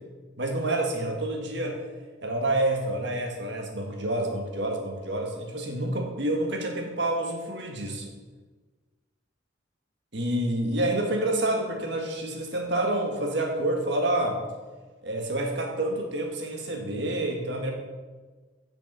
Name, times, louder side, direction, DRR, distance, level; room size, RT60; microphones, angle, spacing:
voice 1, 0.4-1.8 2.2-8.1 10.1-14.4 15.0-17.7, right 1 dB, 60° right, 2 dB, 1.7 m, -28 dB
8.5 x 6.3 x 5.5 m, 1.3 s
head